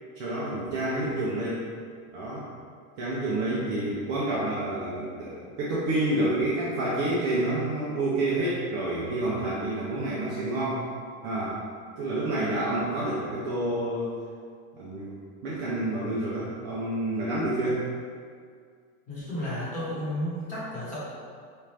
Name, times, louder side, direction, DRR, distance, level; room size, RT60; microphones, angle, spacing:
voice 1, 0.2-1.6 2.1-2.4 3.0-10.8 11.2-11.6 12.0-14.1 14.7-17.9, right 1 dB, 30° right, -7 dB, 0.4 m, -28 dB
voice 2, 19.1-21.0, left 1 dB, 20° left, -9 dB, 1.1 m, -32 dB
4.3 x 2.4 x 3.2 m, 2.1 s
supercardioid pair, 155°, 44 cm